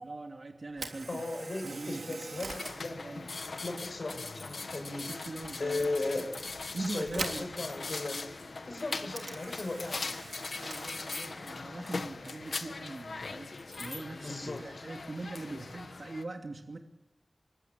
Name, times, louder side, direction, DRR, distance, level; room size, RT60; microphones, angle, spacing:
voice 1, 0.0-1.2 1.6-2.2 3.0-3.3 5.1-6.3 6.7-7.5 9.0-9.4 10.5-13.5 13.8-16.8, right 2 dB, 60° right, 3 dB, 2.7 m, -42 dB
Camera, 0.7-14.8, right 3 dB, 85° right, 3.3 m, -47 dB
voice 2, 1.1-3.2 3.5-5.1 5.6-6.3 6.8-8.2 8.7-10.2 11.6-11.8 14.1-14.7, left 2 dB, 65° left, 5 dB, 7.0 m, -37 dB
sound 1, 2.5-16.2, left 3 dB, 85° left, 1.5 m, -40 dB
27.0 x 24.5 x 9.0 m, 0.97 s
wide cardioid pair, 80°, 0 cm